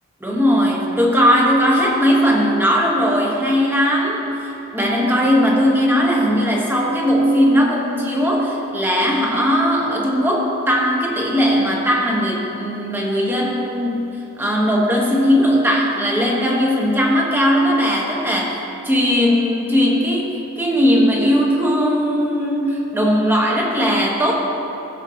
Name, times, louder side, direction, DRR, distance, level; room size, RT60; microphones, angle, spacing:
voice 1, 0.2-14.1 14.4-18.5 18.8-24.3, equal, 10° right, -2 dB, 1.1 m, -18 dB
15.5 x 6.9 x 2.8 m, 2.9 s
head